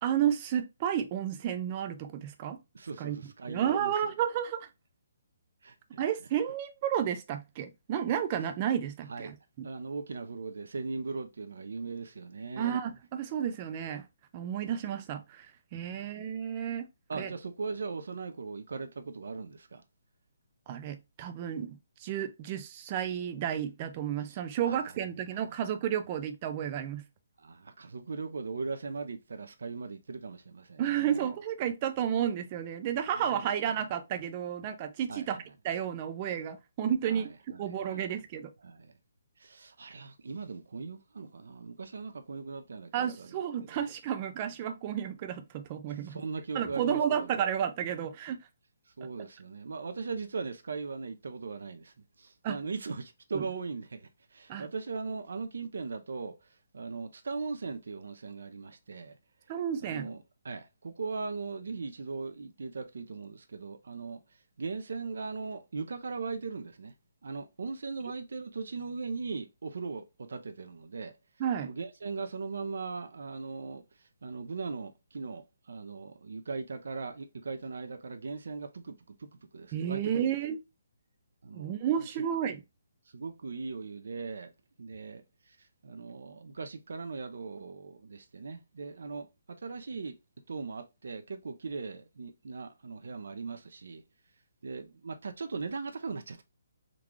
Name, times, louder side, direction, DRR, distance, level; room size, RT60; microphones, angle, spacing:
voice 1, 0.0-2.6 3.0-4.7 6.0-9.7 12.6-14.1 14.3-17.3 20.7-27.0 30.8-37.3 37.6-38.5 42.9-46.2 46.5-48.4 52.4-52.6 53.3-53.5 54.5-54.7 59.5-60.1 71.4-71.7 79.7-80.6 81.5-82.6, right 9 dB, 25° right, 0.5 m, -32 dB
voice 2, 2.7-3.9 5.6-6.0 9.1-9.3 9.6-12.8 14.6-14.7 15.8-16.1 17.1-19.8 24.6-24.8 25.3-25.5 27.4-31.3 33.2-33.8 35.1-35.4 37.1-38.1 38.6-38.9 39.4-43.3 46.0-47.4 49.0-56.3 56.7-59.1 59.8-64.2 64.6-66.9 67.2-71.1 71.6-73.8 74.2-80.3 81.4-81.8 83.1-84.5 84.8-85.6 85.8-90.2 90.5-94.0 94.6-96.4, right 4 dB, 75° right, 0.6 m, -39 dB
3.8 x 2.4 x 3.1 m
hypercardioid pair, 165°, 0 cm